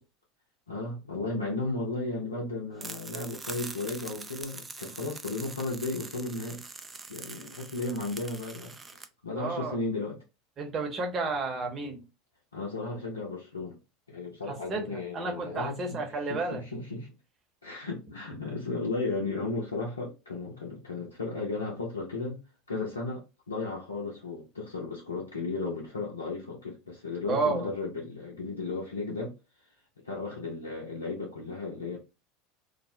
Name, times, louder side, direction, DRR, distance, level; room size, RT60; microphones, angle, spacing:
voice 1, 0.7-6.6 7.1-10.2 12.5-13.8 14.1-16.0 16.2-17.1 17.6-22.4 22.7-29.3 30.0-32.0, left 3 dB, 90° left, 0.6 m, -35 dB
sound 1, 2.8-9.1, right 4 dB, 20° right, 0.3 m, -43 dB
voice 2, 9.3-9.8 10.6-12.0 14.7-16.6 27.3-27.7, right 3 dB, 35° right, 0.9 m, -31 dB
2.3 x 2.1 x 2.7 m
hypercardioid pair, 80°, 0 cm